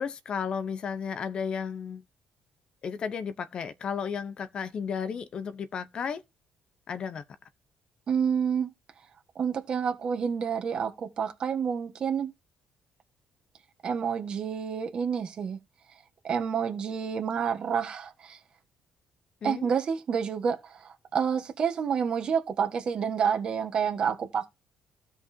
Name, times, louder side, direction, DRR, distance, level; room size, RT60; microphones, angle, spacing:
voice 1, 0.0-2.0 2.8-6.2 6.9-7.2 19.4-19.7, left 6 dB, 45° left, 0.8 m, -33 dB
voice 2, 8.1-8.7 9.3-12.3 13.8-15.6 16.2-18.4 19.4-24.5, right 7 dB, 40° right, 1.6 m, -29 dB
15.5 x 5.5 x 2.8 m
cardioid pair, 140°, 2 cm